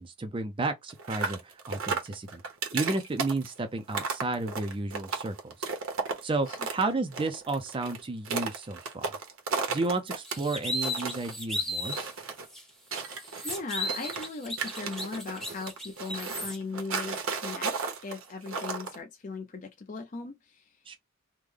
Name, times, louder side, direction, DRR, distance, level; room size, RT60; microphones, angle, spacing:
voice 1, 0.0-2.4 2.7-5.7 6.2-9.1 9.7-11.9 20.9-21.0, right 3 dB, 25° right, 0.4 m, -32 dB
sound 1, 0.9-6.8 7.1-10.4 10.7-11.3 11.8-12.4 12.9-14.3 14.6-19.0, right 4 dB, 70° right, 0.9 m, -34 dB
voice 2, 6.5-7.0 13.4-17.7 18.0-20.8, left 4 dB, 40° left, 0.5 m, -38 dB
sound 2, 10.3-12.1 12.5-12.6 13.0-16.6, left 1 dB, ahead, 0.7 m, -35 dB
3.5 x 2.1 x 3.2 m
head